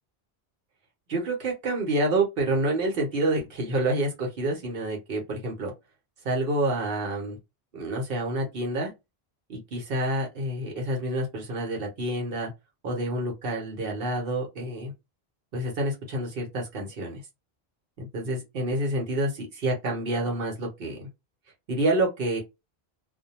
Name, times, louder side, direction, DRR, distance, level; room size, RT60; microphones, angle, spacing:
voice 1, 1.1-5.7 6.2-7.4 7.7-8.9 9.5-12.5 12.8-14.9 15.5-17.2 18.0-21.0 21.7-22.4, right 1 dB, 65° right, 0.9 m, -28 dB
2.1 x 2.1 x 2.8 m
omnidirectional pair, 1.0 m